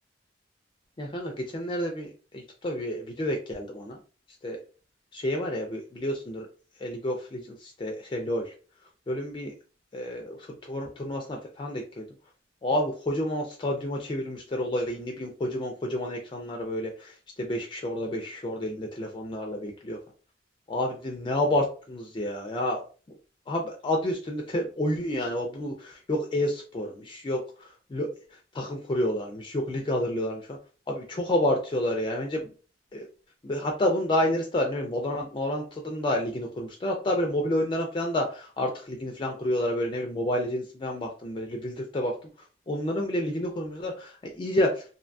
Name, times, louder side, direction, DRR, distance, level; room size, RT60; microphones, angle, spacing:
voice 1, 1.0-4.0 4.4-4.6 5.1-6.5 6.8-8.5 9.1-9.5 9.9-12.0 12.6-20.0 20.7-22.8 23.5-27.4 27.9-28.1 28.5-30.6 30.9-32.4 32.9-33.1 33.4-42.2 42.7-44.8, left 1 dB, 25° left, 2 dB, 0.3 m, -29 dB
2.6 x 2.2 x 2.5 m, 0.37 s
head